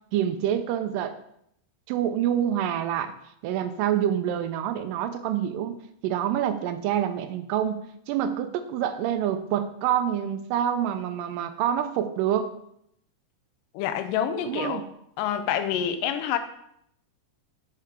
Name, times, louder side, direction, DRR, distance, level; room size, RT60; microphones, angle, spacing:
voice 1, 0.1-1.2 1.9-3.1 3.4-12.5 14.4-14.8, right 10 dB, 85° right, 10 dB, 2.2 m, -27 dB
voice 2, 13.7-14.8 15.2-16.4, left 9 dB, 90° left, 10 dB, 2.2 m, -27 dB
6.7 x 6.5 x 3.6 m, 0.73 s
omnidirectional pair, 3.8 m